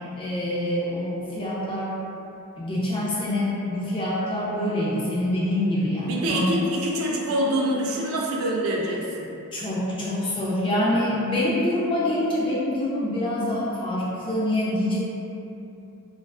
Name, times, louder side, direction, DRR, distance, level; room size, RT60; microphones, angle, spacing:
voice 1, 0.2-1.9 2.6-6.5 9.5-15.0, left 1 dB, 25° left, -8 dB, 0.4 m, -25 dB
voice 2, 6.0-9.3, right 1 dB, 70° right, -2 dB, 0.3 m, -25 dB
2.3 x 2.3 x 2.3 m, 2.8 s
head